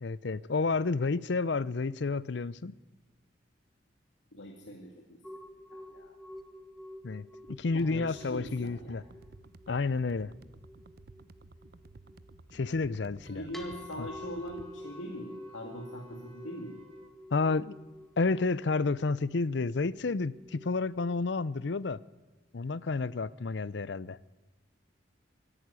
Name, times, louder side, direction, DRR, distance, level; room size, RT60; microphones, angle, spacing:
voice 1, 0.0-2.7 7.0-9.0 9.7-10.3 12.5-13.5 14.0-14.1 17.3-17.8 18.2-22.0 22.5-24.2, left 3 dB, 60° left, 0.6 m, -30 dB
voice 2, 4.3-5.2 5.7-6.2 7.7-9.0 13.3-16.8, equal, 85° left, 2.2 m, -42 dB
sound 1, 5.2-21.1, left 1 dB, ahead, 1.5 m, -50 dB
sound 2, 7.7-14.7, right 2 dB, 55° right, 0.8 m, -54 dB
Wind instrument woodwind instrument, 13.2-17.1, right 2 dB, 30° right, 1.9 m, -61 dB
25.0 x 11.0 x 9.7 m
head